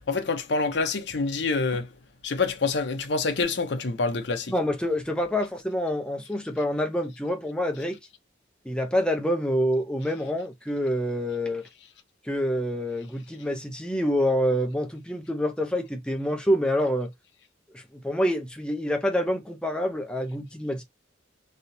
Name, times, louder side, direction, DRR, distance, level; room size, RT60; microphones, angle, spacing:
voice 1, 0.0-1.9 2.2-4.5, left 4 dB, 70° left, 0.7 m, -26 dB
voice 2, 4.5-8.0 8.7-11.7 12.2-17.1 17.7-20.8, equal, 5° left, 0.5 m, -27 dB
3.3 x 2.7 x 2.7 m
head